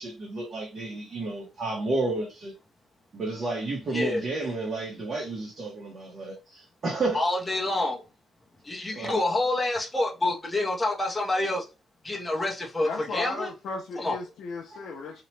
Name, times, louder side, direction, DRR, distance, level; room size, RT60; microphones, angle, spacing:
voice 1, 0.0-2.5 3.1-7.2 8.9-9.2, right 2 dB, 35° right, 0.7 m, -31 dB
voice 2, 3.9-4.2 7.1-8.0 8.6-11.7 12.0-13.5 14.0-14.2, left 2 dB, 10° left, 0.5 m, -27 dB
voice 3, 12.8-15.2, left 3 dB, 60° left, 0.4 m, -35 dB
2.8 x 2.0 x 3.1 m
cardioid pair, 175°, 0 cm